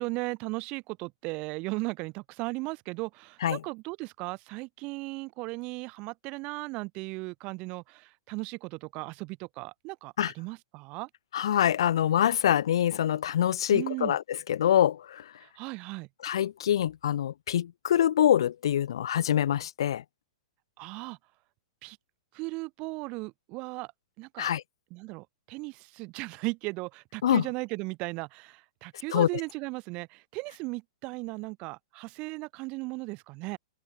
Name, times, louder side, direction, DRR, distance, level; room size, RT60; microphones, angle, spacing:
voice 1, 0.0-11.1 13.7-14.2 15.4-16.1 20.8-21.2 21.8-22.0 22.3-23.9 24.2-24.5 24.9-33.6, right 25 dB, 35° right, 5.4 m, -36 dB
voice 2, 11.3-15.2 16.2-20.0 24.4-24.6 27.2-27.5 29.1-29.3, left 10 dB, 60° left, 0.8 m, -25 dB
open air
figure-of-eight pair, 105°, 3 cm